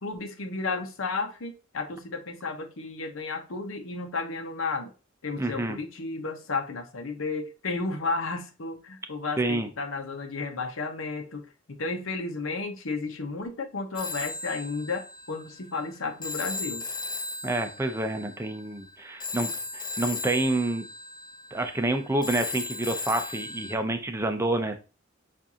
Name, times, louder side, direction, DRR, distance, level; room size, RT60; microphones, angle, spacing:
voice 1, 0.0-4.9 5.2-16.8, left 3 dB, 80° left, 5 dB, 0.8 m, -33 dB
voice 2, 5.4-5.8 9.4-9.7 17.4-20.8 21.5-24.8, right 2 dB, 15° right, 6 dB, 0.5 m, -28 dB
Telephone, 14.0-23.7, left 3 dB, 20° left, 0.7 m, -36 dB
7.2 x 2.6 x 2.8 m, 0.32 s
head